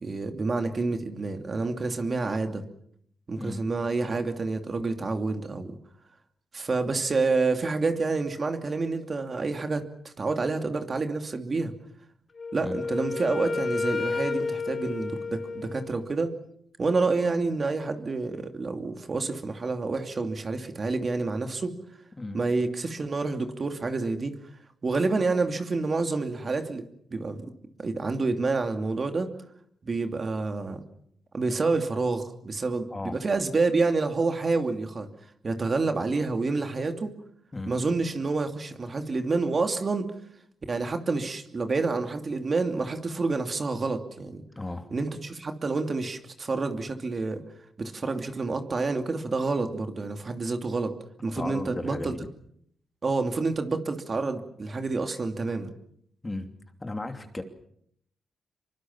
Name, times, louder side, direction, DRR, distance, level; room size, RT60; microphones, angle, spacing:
voice 1, 0.0-2.6 3.3-5.8 6.5-11.7 12.5-16.3 16.8-21.7 22.3-24.3 24.8-26.8 27.1-27.5 27.8-29.3 29.8-30.8 31.3-35.1 35.4-37.1 37.7-40.1 40.7-44.4 44.9-47.4 47.8-50.9 51.2-52.1 53.0-55.7, right 3 dB, 35° right, 6 dB, 2.8 m, -28 dB
Wind instrument woodwind instrument, 12.4-16.2, left 4 dB, 40° left, 1.9 m, -31 dB
voice 2, 44.6-44.9 51.4-52.2 56.2-56.5 56.8-57.4, left 2 dB, 20° left, 6 dB, 2.9 m, -35 dB
26.5 x 24.0 x 7.4 m, 0.70 s
cardioid pair, 115°, 0 cm